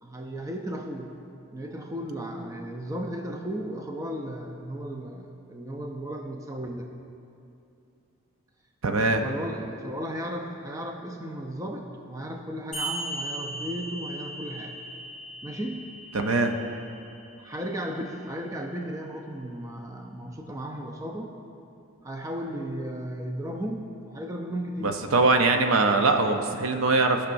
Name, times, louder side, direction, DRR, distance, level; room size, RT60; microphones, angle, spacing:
voice 1, 0.0-1.2 1.5-6.9 9.2-14.8 15.4-15.9 17.4-21.3 22.0-25.0, equal, 15° right, 2 dB, 0.4 m, -35 dB
voice 2, 8.8-9.2 16.1-16.5 24.8-27.2, right 3 dB, 65° right, 5 dB, 0.6 m, -22 dB
sound 1, 12.7-17.7, right 1 dB, 5° left, 1.6 m, -38 dB
16.5 x 5.8 x 2.6 m, 2.7 s
head